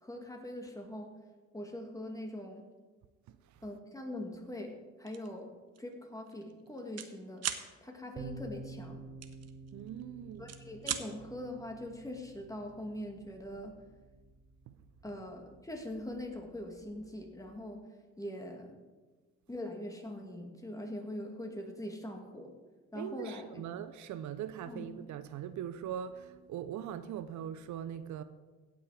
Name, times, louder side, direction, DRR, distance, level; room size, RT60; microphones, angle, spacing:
voice 1, 0.0-1.1 1.5-2.6 3.6-7.4 7.8-9.0 10.4-13.8 15.0-17.8 18.2-18.8 19.5-22.5 22.9-23.6 24.7-24.8, left 1 dB, 10° left, 2.1 m, -42 dB
voice 2, 3.3-3.6 9.7-10.5 14.7-14.8 22.9-28.2, right 9 dB, 70° right, 0.6 m, -41 dB
sound 1, 5.1-5.3 5.7-5.9 6.2-7.1 7.4-7.7 9.2-10.0 10.3-11.1, right 9 dB, 55° right, 1.0 m, -37 dB
sound 2, 8.1-17.6, right 3 dB, 40° right, 1.3 m, -51 dB
16.5 x 6.2 x 4.9 m
cardioid pair, 90°, 30 cm